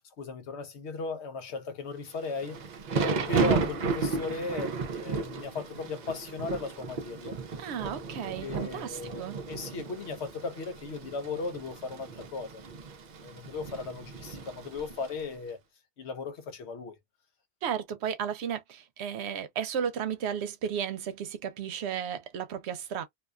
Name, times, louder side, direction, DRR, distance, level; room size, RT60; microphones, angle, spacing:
voice 1, 0.0-2.6 2.9-7.4 8.4-12.6 13.2-15.6 16.0-17.0, left 4 dB, 80° left, 1.0 m, -37 dB
Thunder / Rain, 2.2-15.2, right 4 dB, 55° right, 0.5 m, -34 dB
voice 2, 7.6-9.4 17.6-23.0, right 8 dB, 80° right, 0.8 m, -34 dB
2.4 x 2.3 x 2.3 m
omnidirectional pair, 1.1 m